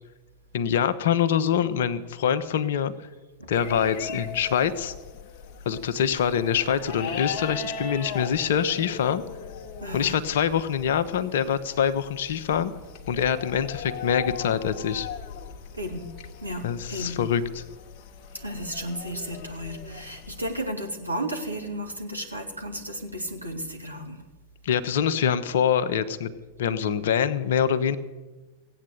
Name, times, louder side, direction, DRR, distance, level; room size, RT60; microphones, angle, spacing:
voice 1, 0.5-2.9 3.5-4.9 5.6-9.2 9.9-12.7 13.1-15.1 16.6-17.6 24.6-26.3 26.6-28.0, left 8 dB, 60° left, 12 dB, 1.0 m, -25 dB
sound 1, 3.5-20.6, left 6 dB, 40° left, 1.2 m, -39 dB
voice 2, 9.8-10.2 15.7-16.1 16.4-17.2 18.3-24.2, equal, 85° right, 2 dB, 2.1 m, -33 dB
16.0 x 8.8 x 7.8 m, 1.2 s
figure-of-eight pair, 90°, 0 cm